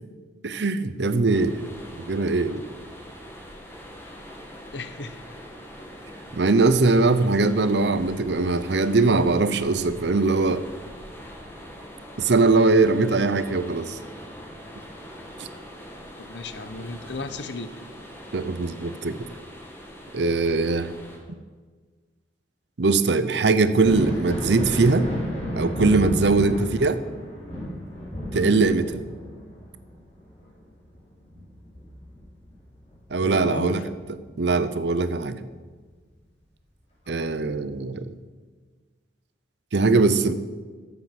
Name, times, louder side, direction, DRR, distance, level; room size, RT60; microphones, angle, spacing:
voice 1, 0.4-1.7 2.0-2.6 6.3-10.6 12.2-14.0 15.4-15.5 18.3-19.2 20.1-20.9 22.8-25.1 25.5-27.0 28.3-29.0 33.1-33.8 34.4-35.4 37.1-38.1 39.7-40.3, right 3 dB, 65° right, 13 dB, 0.7 m, -21 dB
sound 1, 1.3-21.2, equal, 15° left, 1.9 m, -43 dB
voice 2, 4.7-5.2 16.2-17.7 26.3-26.6 28.3-28.5 33.2-33.8, left 3 dB, 70° left, 11 dB, 0.8 m, -35 dB
Thunder, 23.7-33.0 33.4-34.6 36.2-36.3 37.0-37.2, equal, 40° left, 4.2 m, -33 dB
13.0 x 7.7 x 6.0 m, 1.4 s
head